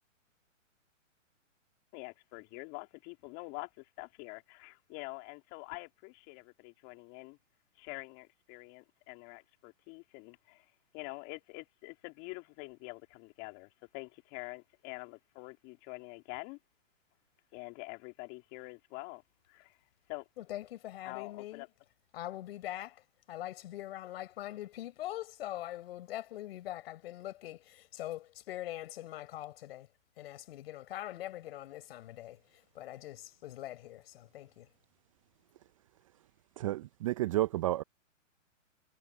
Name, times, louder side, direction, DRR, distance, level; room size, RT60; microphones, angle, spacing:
voice 1, 1.9-7.4 7.8-10.7 10.9-16.6 17.5-19.2 19.5-19.7 20.1-20.3 21.0-21.7, left 28 dB, 30° left, 3.1 m, -46 dB
voice 2, 20.4-21.6 22.1-29.9 30.2-32.4 32.7-34.7, left 14 dB, 50° left, 5.1 m, -43 dB
voice 3, 36.6-37.8, right 16 dB, 25° right, 0.5 m, -31 dB
hypercardioid pair, 140°, 39 cm